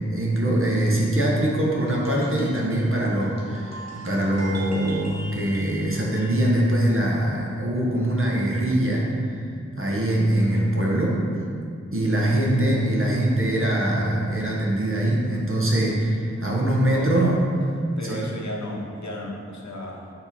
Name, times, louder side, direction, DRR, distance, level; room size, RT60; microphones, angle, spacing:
voice 1, 0.0-9.1 9.8-11.2 11.9-17.4 18.0-18.2, right 1 dB, 45° right, -3 dB, 1.2 m, -23 dB
sound 1, 1.7-6.5, right 3 dB, 65° right, 1.1 m, -42 dB
voice 2, 12.1-12.6 16.9-17.4 18.0-20.1, equal, 70° left, -2 dB, 1.0 m, -34 dB
7.1 x 3.8 x 4.4 m, 2.2 s
wide cardioid pair, 65°, 29 cm